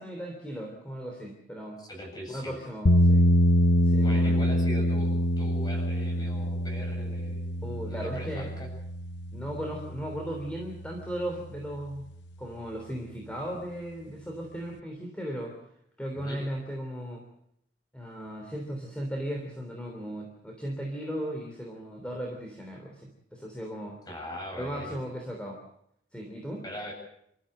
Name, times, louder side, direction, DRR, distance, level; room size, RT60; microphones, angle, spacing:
voice 1, 0.0-1.8 2.3-3.2 3.8-4.4 7.6-8.5 9.3-12.1 12.4-15.5 16.0-17.2 17.9-24.0 24.5-25.6 26.1-26.6, equal, 5° left, 1 dB, 3.3 m, -36 dB
voice 2, 1.9-2.6 4.0-7.5 7.9-8.7 16.1-16.4 24.1-25.0 26.6-26.9, equal, 20° left, 2 dB, 7.9 m, -41 dB
sound 1, 2.9-10.9, equal, 90° left, 0.9 m, -25 dB
27.5 x 14.0 x 7.7 m, 0.75 s
head